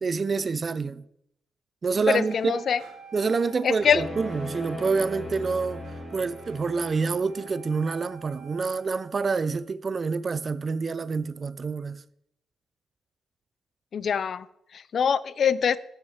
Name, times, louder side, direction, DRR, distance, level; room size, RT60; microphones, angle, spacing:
voice 1, 0.0-1.0 1.8-2.6 3.1-5.8 6.1-12.0, right 4 dB, 35° right, 0.3 m, -27 dB
voice 2, 2.1-2.8 3.6-4.1 13.9-15.8, left 7 dB, 50° left, 0.4 m, -24 dB
Wind instrument woodwind instrument, 2.2-9.1, right 6 dB, 65° right, 1.8 m, -49 dB
sound 1, 2.2-7.3, right 4 dB, 90° right, 1.3 m, -57 dB
sound 2, 3.8-7.8, left 1 dB, ahead, 2.5 m, -38 dB
6.6 x 5.7 x 5.7 m
cardioid pair, 90°, 0 cm